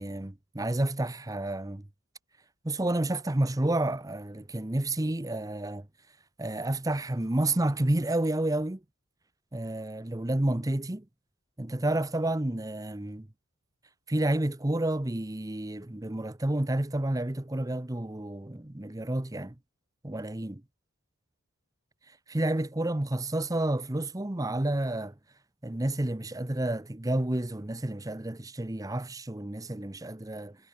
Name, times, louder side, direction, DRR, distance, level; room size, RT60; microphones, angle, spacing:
voice 1, 0.0-1.8 2.6-5.9 6.4-8.8 9.5-11.0 11.6-13.3 14.1-19.5 20.0-20.6 22.3-25.1 25.6-30.6, right 1 dB, 15° right, 0.8 m, -30 dB
head